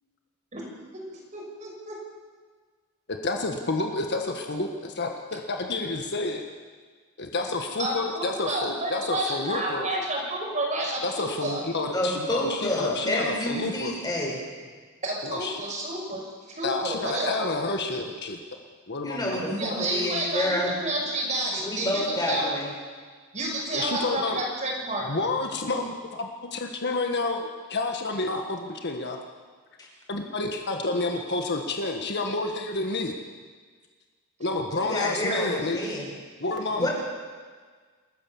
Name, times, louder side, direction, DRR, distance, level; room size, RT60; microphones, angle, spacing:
voice 1, 0.9-2.0 7.8-12.0 15.0-17.5 19.5-22.5 23.3-25.1, right 1 dB, 35° right, -1 dB, 5.9 m, -30 dB
voice 2, 3.2-6.4 7.2-9.9 11.0-13.9 15.2-15.6 16.1-16.2 16.6-18.4 18.9-19.4 23.7-24.4 25.1-29.2 30.1-33.2 34.4-35.8 36.4-36.9, left 3 dB, 50° left, 3 dB, 1.6 m, -29 dB
voice 3, 11.9-14.4 19.0-20.8 21.6-22.7 29.8-29.9 34.8-36.1 36.7-36.9, left 1 dB, 20° left, -2 dB, 5.6 m, -28 dB
28.0 x 13.5 x 7.3 m, 1.5 s
head